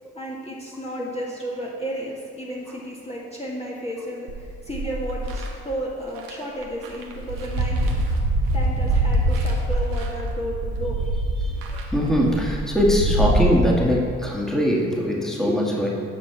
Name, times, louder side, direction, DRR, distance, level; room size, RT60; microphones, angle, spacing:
voice 1, 0.1-8.0 8.5-11.0, equal, 20° left, -5 dB, 1.9 m, -33 dB
sound 1, 4.3-5.5 6.2-6.3 6.6-13.5, right 1 dB, 80° right, 1.3 m, -24 dB
voice 2, 11.9-15.9, equal, ahead, -3 dB, 2.1 m, -21 dB
9.8 x 5.7 x 4.6 m, 2.2 s
hypercardioid pair, 45°, 34 cm